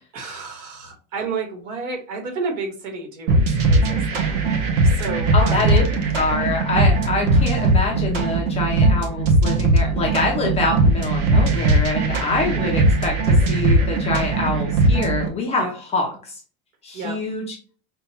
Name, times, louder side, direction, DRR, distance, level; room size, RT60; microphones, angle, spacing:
voice 1, 0.1-5.8 7.2-7.5 15.6-15.7 16.9-17.2, right 4 dB, 75° right, 3 dB, 1.6 m, -31 dB
sound 1, 3.3-15.3, right 2 dB, 40° right, 0.8 m, -19 dB
voice 2, 5.3-5.8 6.1-15.6 15.9-16.4 16.8-17.6, left 3 dB, 15° left, 0 dB, 0.4 m, -25 dB
5.2 x 2.2 x 2.9 m, 0.40 s
supercardioid pair, 170°, 39 cm